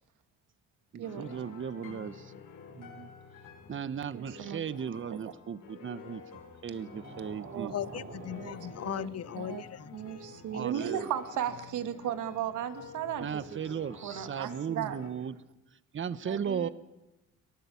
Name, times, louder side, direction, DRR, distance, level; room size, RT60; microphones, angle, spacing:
voice 1, 0.9-2.3 2.8-3.1 3.7-6.2 6.6-7.7 10.5-11.1 13.2-15.3 15.9-16.7, right 7 dB, 40° right, 14 dB, 1.2 m, -36 dB
sound 1, 1.0-15.1, left 6 dB, 85° left, 6.9 m, -50 dB
voice 2, 4.1-4.6 5.1-5.2 7.5-7.7 8.3-8.6 8.9-9.1 9.4-9.6 9.9-13.6 14.0-15.0 16.3-16.7, right 10 dB, 80° right, 10 dB, 2.1 m, -36 dB
sound 2, 6.6-15.3, right 4 dB, 55° right, 6.2 m, -51 dB
voice 3, 7.7-10.0 10.5-10.7, left 11 dB, 55° left, 19 dB, 0.9 m, -38 dB
23.0 x 19.0 x 8.5 m, 0.98 s
cardioid pair, 90°, 30 cm